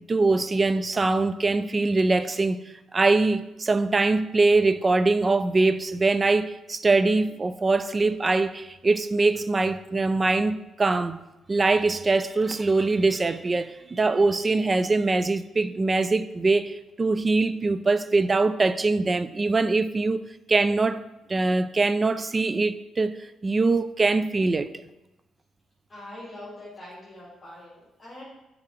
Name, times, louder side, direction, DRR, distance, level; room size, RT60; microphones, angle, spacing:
voice 1, 0.0-2.6 2.9-11.2 11.5-21.0 21.3-23.2 23.4-24.7, right 3 dB, 30° right, 0.3 m, -23 dB
voice 2, 25.9-28.2, left 1 dB, 25° left, 2.1 m, -43 dB
7.4 x 4.8 x 3.2 m
cardioid pair, 90°, 0 cm